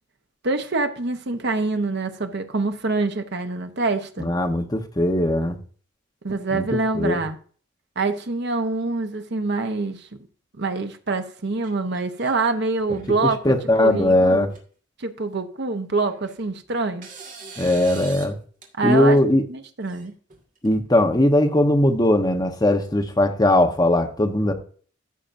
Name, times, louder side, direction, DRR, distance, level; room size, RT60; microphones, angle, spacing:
voice 1, 0.4-4.3 6.2-7.4 8.0-10.1 10.6-14.5 15.0-17.1 18.8-19.2 19.5-20.1, right 3 dB, 55° right, 0.9 m, -25 dB
voice 2, 4.2-5.6 6.5-7.2 13.4-14.5 17.6-18.4 18.8-19.4 20.6-24.5, left 1 dB, 20° left, 0.9 m, -19 dB
sound 1, 11.6-12.4 12.8-13.3 14.1-14.2 14.5-14.6 15.9-16.5 17.0-18.3 18.6-18.7 19.8-20.7, right 4 dB, 40° right, 1.9 m, -42 dB
14.0 x 5.8 x 2.6 m
head